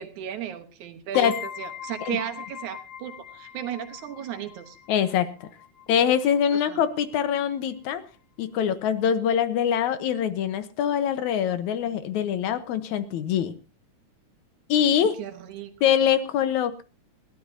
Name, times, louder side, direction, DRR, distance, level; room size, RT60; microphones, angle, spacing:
voice 1, 0.0-4.8 6.5-6.8 15.2-15.7, right 10 dB, 75° right, 6 dB, 2.6 m, -35 dB
sound 1, 1.1-6.6, left 10 dB, 45° left, 2.3 m, -41 dB
voice 2, 4.9-5.5 5.9-8.0 8.4-13.5 14.7-15.2 15.8-16.8, left 9 dB, 75° left, 12 dB, 2.4 m, -24 dB
21.0 x 15.5 x 2.8 m, 0.32 s
omnidirectional pair, 3.6 m